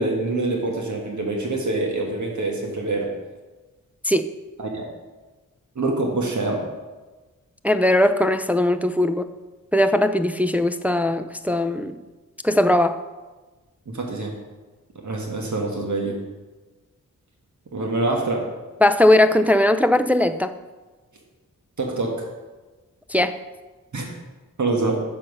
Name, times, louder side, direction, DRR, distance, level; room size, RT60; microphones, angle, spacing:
voice 1, 0.0-3.1 4.6-4.9 5.7-6.6 13.9-14.3 15.0-16.1 17.7-18.4 21.8-22.3 23.9-24.0 24.6-24.9, right 2 dB, 60° right, 0 dB, 1.5 m, -25 dB
voice 2, 7.6-9.3 9.7-12.0 12.4-13.0 18.8-20.5 23.1-23.4, left 1 dB, 5° right, 9 dB, 0.4 m, -19 dB
6.5 x 5.9 x 5.5 m, 1.2 s
cardioid pair, 55°, 33 cm